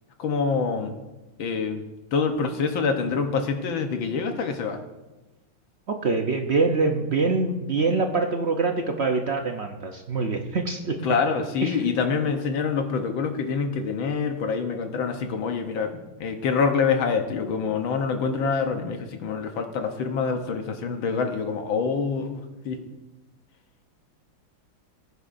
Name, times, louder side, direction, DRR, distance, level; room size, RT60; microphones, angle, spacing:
voice 1, 0.2-1.0 1.4-1.8 2.1-4.8 11.0-22.8, left 5 dB, 70° left, 5 dB, 1.8 m, -26 dB
voice 2, 5.9-11.0 11.6-11.8, right 3 dB, 75° right, 4 dB, 0.6 m, -24 dB
19.5 x 9.8 x 2.6 m, 1.1 s
omnidirectional pair, 2.2 m